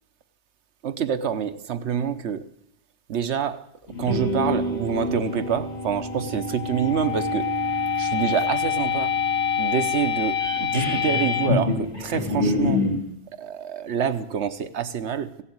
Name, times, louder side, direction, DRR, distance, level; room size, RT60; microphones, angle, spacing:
voice 1, 0.8-2.4 3.1-3.6 4.0-7.5 8.0-9.1 9.6-12.8 13.4-15.4, right 8 dB, 85° right, 11 dB, 1.2 m, -26 dB
sound 1, 3.9-13.0, left 4 dB, 70° left, 2.7 m, -25 dB
16.5 x 7.1 x 8.7 m, 0.82 s
omnidirectional pair, 1.1 m